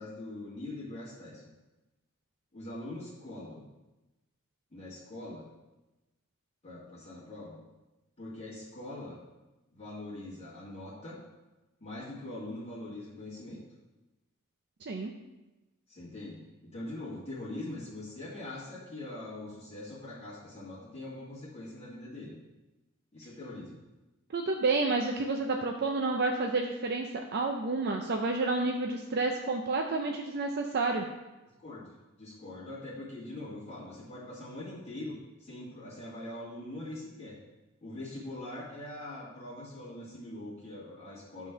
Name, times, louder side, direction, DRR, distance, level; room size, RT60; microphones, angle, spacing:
voice 1, 0.0-1.4 2.5-3.6 4.7-5.5 6.6-7.6 8.2-9.2 9.7-11.2 11.8-13.6 15.9-22.4 23.1-23.8 31.6-31.9 32.2-37.4 37.8-41.5, left 1 dB, 30° left, -9 dB, 2.0 m, -42 dB
voice 2, 24.3-31.0, right 3 dB, 50° right, 3 dB, 0.5 m, -30 dB
8.9 x 3.8 x 5.8 m, 1.1 s
head